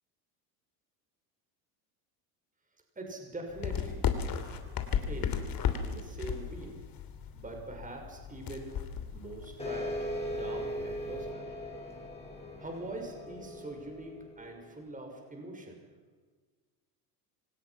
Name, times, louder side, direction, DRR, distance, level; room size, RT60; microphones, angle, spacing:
voice 1, 3.0-4.0 5.1-5.4 5.8-6.8 7.3-8.7 9.1-11.5 12.6-15.8, right 2 dB, 15° right, 2 dB, 6.2 m, -43 dB
sound 1, 3.5-11.3, left 8 dB, 45° left, 3.1 m, -36 dB
sound 2, 9.6-14.7, equal, 10° left, 7.6 m, -39 dB
25.5 x 19.0 x 6.0 m, 1.4 s
supercardioid pair, 90°, 49 cm